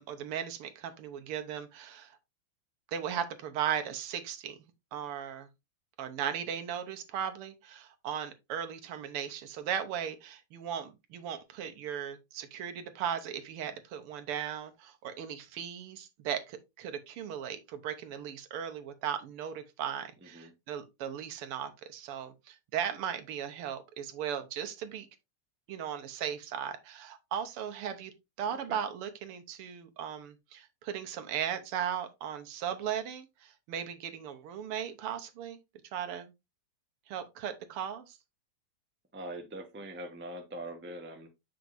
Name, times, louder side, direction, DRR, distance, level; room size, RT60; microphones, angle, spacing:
voice 1, 0.0-2.2 2.9-4.6 4.9-5.5 6.0-25.1 25.7-28.1 28.4-35.6 35.9-36.3 37.1-38.2, right 9 dB, 85° right, 1.9 m, -37 dB
voice 2, 20.2-20.5 28.5-28.8 39.1-41.3, right 1 dB, 10° right, 0.5 m, -43 dB
7.7 x 5.8 x 2.6 m
omnidirectional pair, 2.4 m